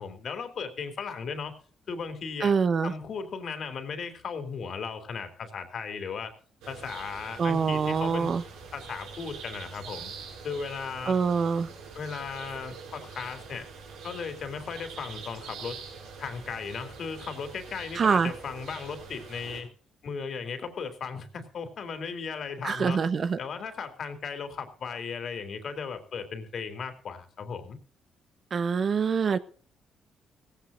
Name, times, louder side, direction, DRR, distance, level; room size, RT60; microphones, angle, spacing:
voice 1, 0.0-1.6 1.9-2.6 2.8-6.3 6.7-8.4 8.7-10.1 10.4-11.2 11.9-13.7 14.0-15.8 16.2-19.7 20.0-23.0 23.4-27.8, left 5 dB, 55° left, 8 dB, 3.3 m, -36 dB
voice 2, 2.4-2.9 7.4-8.4 11.1-11.7 18.0-18.3 22.6-23.4 28.5-29.4, right 6 dB, 50° right, 12 dB, 1.1 m, -25 dB
sound 1, 6.6-19.6, right 5 dB, 90° right, 6.5 m, -44 dB
17.5 x 16.0 x 2.7 m, 0.43 s
cardioid pair, 90°, 0 cm